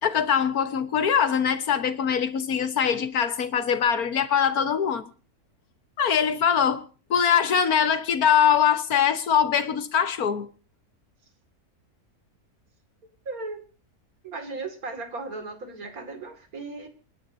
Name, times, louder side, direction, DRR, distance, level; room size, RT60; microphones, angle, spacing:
voice 1, 0.0-5.1 6.0-6.8 7.1-10.5, left 7 dB, 75° left, 11 dB, 1.7 m, -22 dB
voice 2, 13.0-13.6 14.2-16.9, right 3 dB, 70° right, 7 dB, 2.8 m, -36 dB
27.5 x 11.0 x 2.7 m, 0.37 s
omnidirectional pair, 1.6 m